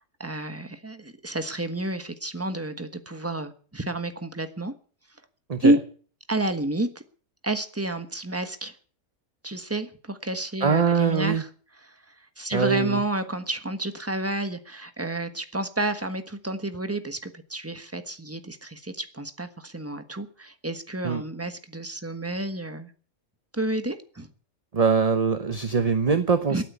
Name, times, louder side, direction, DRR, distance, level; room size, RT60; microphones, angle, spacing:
voice 1, 0.2-4.7 5.6-5.8 6.3-7.0 7.4-8.7 9.4-11.5 11.9-12.0 12.4-22.9 23.5-24.3 26.5-26.6, right 1 dB, 10° right, 9 dB, 1.3 m, -30 dB
voice 2, 10.6-11.4 12.5-13.0 21.0-21.2 24.7-26.6, right 5 dB, 30° right, 10 dB, 0.9 m, -22 dB
16.5 x 9.3 x 8.3 m, 0.43 s
omnidirectional pair, 1.5 m